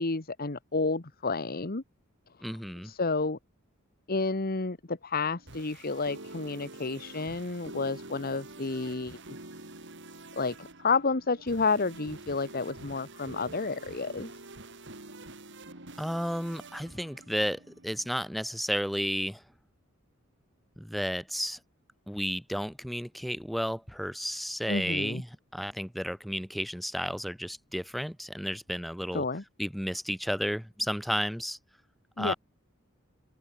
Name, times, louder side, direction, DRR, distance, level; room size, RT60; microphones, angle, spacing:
voice 1, 0.0-1.8 2.8-3.4 4.1-9.2 10.4-14.3 24.7-25.2 29.1-29.4 32.2-32.3, left 3 dB, 45° left, 1.3 m, -30 dB
voice 2, 2.4-2.9 16.0-19.4 20.8-21.6 22.1-25.3 25.5-29.2 29.6-31.6 32.2-32.3, equal, ahead, 3.2 m, -32 dB
sound 1, 5.3-18.1, right 2 dB, 60° right, 5.4 m, -47 dB
head